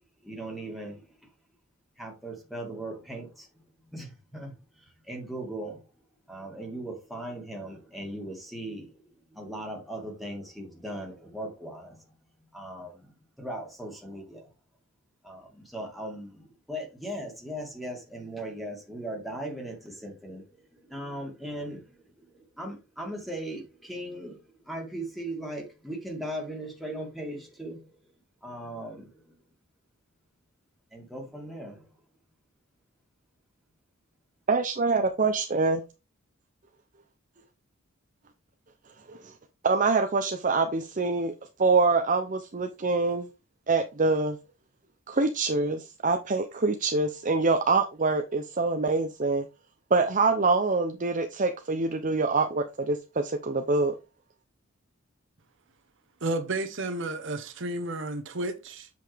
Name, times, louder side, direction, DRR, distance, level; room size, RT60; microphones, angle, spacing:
voice 1, 0.2-1.0 2.0-3.5 3.9-4.5 5.1-5.8 6.3-9.0 9.3-12.0 12.5-13.1 13.4-14.5 15.2-27.9 28.4-29.3 30.9-31.9, right 1 dB, ahead, 2.3 m, -38 dB
voice 2, 34.5-35.8 39.1-39.3 39.6-41.3 41.6-43.3 43.7-44.4 45.1-49.5 49.9-54.0, right 3 dB, 40° right, 0.7 m, -25 dB
voice 3, 56.2-58.9, right 2 dB, 60° right, 1.1 m, -32 dB
7.8 x 5.2 x 3.4 m
head